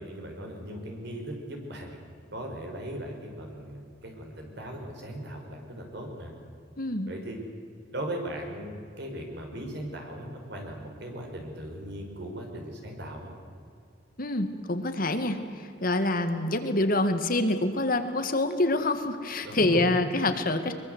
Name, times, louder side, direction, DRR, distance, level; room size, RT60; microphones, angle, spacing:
voice 1, 0.0-2.0 2.3-6.3 7.1-7.4 7.9-13.3 19.4-20.0, right 1 dB, 65° right, 2 dB, 5.4 m, -38 dB
voice 2, 6.8-7.1 14.2-20.7, left 2 dB, 50° left, 8 dB, 1.9 m, -26 dB
23.0 x 23.0 x 8.2 m, 2.4 s
head